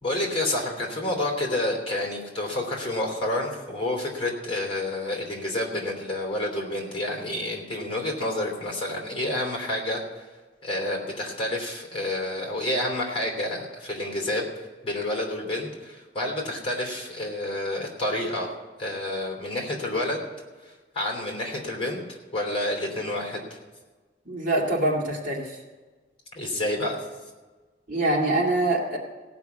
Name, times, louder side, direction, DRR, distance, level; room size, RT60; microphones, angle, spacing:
voice 1, 0.0-10.2 10.6-14.4 14.8-18.5 18.8-20.3 20.6-23.6 26.3-27.0, left 1 dB, 30° left, 0 dB, 3.1 m, -29 dB
voice 2, 24.3-25.6 27.9-29.0, right 1 dB, 45° right, -2 dB, 2.2 m, -24 dB
17.0 x 6.0 x 8.2 m, 1.3 s
head